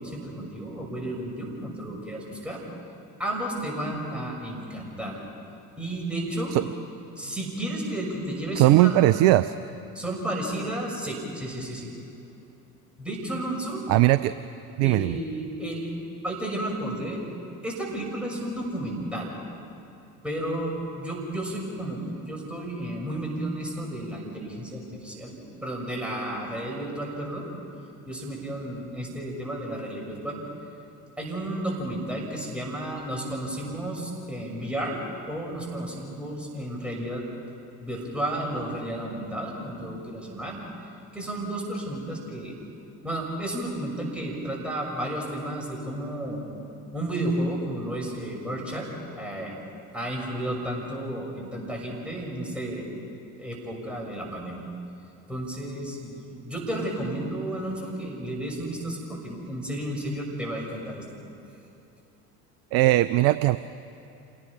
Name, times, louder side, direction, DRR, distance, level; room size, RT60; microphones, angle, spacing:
voice 1, 0.0-2.6 3.2-5.2 5.8-6.6 7.2-9.0 9.9-11.9 13.0-13.8 14.8-15.9 16.2-17.2 17.6-19.3 20.2-27.5 28.1-30.4 31.2-35.0 35.3-37.2 37.8-40.6 41.1-42.6 43.0-46.4 46.9-48.9 49.2-49.6 49.9-52.8 53.4-54.7 55.3-61.0, right 1 dB, ahead, -2 dB, 6.3 m, -32 dB
voice 2, 8.6-9.5 13.9-14.3 14.8-15.2 62.7-63.6, right 16 dB, 35° right, 14 dB, 0.4 m, -19 dB
28.0 x 18.0 x 5.7 m, 2.8 s
figure-of-eight pair, 65°, 46 cm